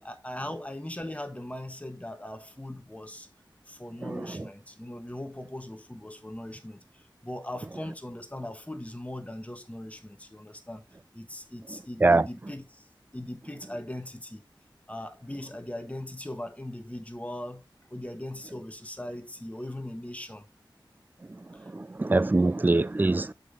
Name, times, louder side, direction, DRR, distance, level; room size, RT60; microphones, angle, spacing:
voice 1, 0.0-3.3 3.7-10.8 11.1-12.9 13.1-14.4 14.9-17.6 17.9-20.5 21.5-21.7, left 1 dB, 15° left, 1.3 m, -39 dB
voice 2, 4.0-4.4 12.0-12.3 21.7-23.3, right 2 dB, 20° right, 0.4 m, -23 dB
6.6 x 5.3 x 3.8 m
wide cardioid pair, 60°, 9 cm